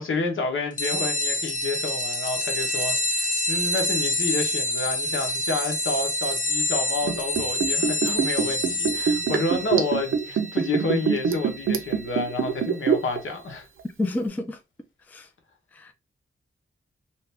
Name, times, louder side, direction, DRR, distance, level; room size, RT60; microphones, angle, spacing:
voice 1, 0.0-13.6, left 3 dB, 70° left, 1.0 m, -29 dB
sound 1, 0.8-12.9, left 1 dB, 40° left, 0.7 m, -28 dB
Liquid, 7.0-13.2 13.5-13.6, right 7 dB, 75° right, 0.6 m, -24 dB
voice 2, 14.0-14.6 15.1-15.3 15.7-15.9, left 2 dB, 10° left, 0.3 m, -29 dB
2.8 x 2.5 x 3.3 m
wide cardioid pair, 165°, 21 cm